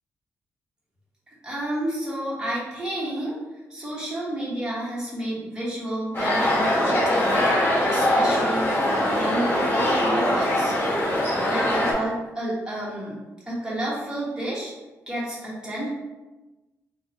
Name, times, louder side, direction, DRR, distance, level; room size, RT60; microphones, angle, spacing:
voice 1, 1.4-3.4 3.7-7.4 7.8-10.7 11.4-13.2 13.5-14.7 15.1-15.9, right 1 dB, 15° right, -7 dB, 1.2 m, -30 dB
sound 1, 6.1-11.9, left 1 dB, 35° left, 1.1 m, -22 dB
3.6 x 2.1 x 2.8 m, 1.1 s
cardioid pair, 90°, 6 cm